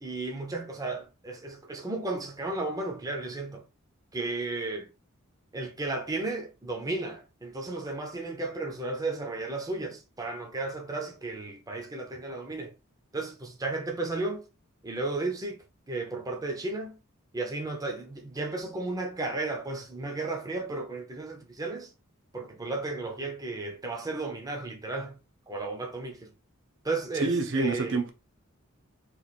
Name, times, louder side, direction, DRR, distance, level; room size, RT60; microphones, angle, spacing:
voice 1, 0.0-3.6 4.1-4.9 5.5-12.7 13.1-14.4 14.8-15.6 15.9-16.9 17.3-21.9 22.3-25.2 25.5-26.3 26.8-28.0, right 2 dB, 15° right, 0.6 m, -34 dB
voice 2, 27.2-28.1, right 3 dB, 60° right, 0.7 m, -27 dB
3.1 x 2.5 x 4.1 m
head